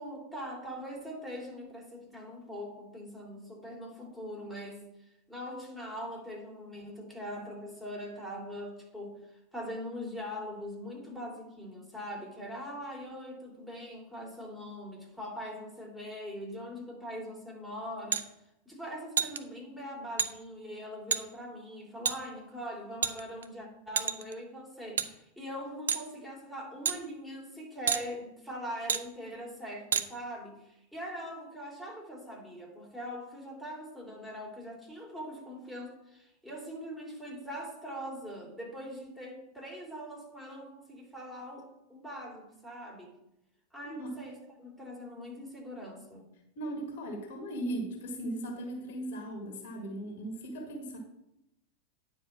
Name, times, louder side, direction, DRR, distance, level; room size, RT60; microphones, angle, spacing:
voice 1, 0.0-4.9 5.3-18.2 18.6-43.1 43.7-46.2, equal, 5° right, -2 dB, 3.1 m, -42 dB
sound 1, 18.1-18.2 19.2-19.4 20.2-20.3 21.1-21.2 22.0-22.2 23.0-23.5 24.0-24.3 25.0-25.1 25.9-26.1 26.8-27.0 27.9-28.0 28.9-29.0 29.9-30.1, right 7 dB, 65° right, 0.5 m, -28 dB
voice 2, 43.8-44.2 46.5-51.0, right 1 dB, 55° left, 2 dB, 1.7 m, -38 dB
9.7 x 4.9 x 5.9 m, 0.86 s
figure-of-eight pair, 90°, 0 cm